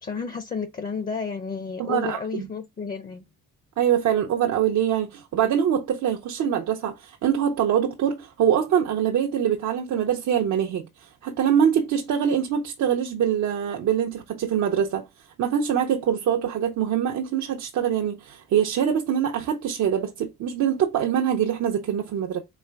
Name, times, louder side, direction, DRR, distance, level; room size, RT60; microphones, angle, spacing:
voice 1, 0.0-3.3, left 5 dB, 30° left, 0.7 m, -31 dB
voice 2, 1.8-2.5 3.8-15.1 15.4-22.4, right 9 dB, 65° right, 0.7 m, -24 dB
4.2 x 3.3 x 3.4 m
cardioid pair, 90°, 30 cm